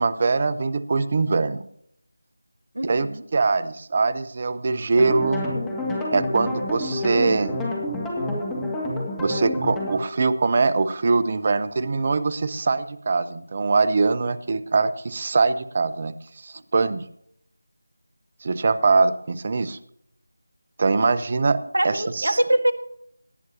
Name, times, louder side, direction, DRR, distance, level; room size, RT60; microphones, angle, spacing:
voice 1, 0.0-1.6 2.8-5.5 6.1-7.6 9.2-16.1 16.4-17.0 18.4-19.8 20.8-21.6 21.8-22.4, right 4 dB, 35° right, 15 dB, 0.8 m, -22 dB
voice 2, 2.8-3.2 21.7-22.7, right 1 dB, 65° right, 9 dB, 1.6 m, -23 dB
sound 1, 5.0-10.0, left 1 dB, 5° left, 2.0 m, -28 dB
18.5 x 11.0 x 2.8 m, 0.69 s
figure-of-eight pair, 165°, 0 cm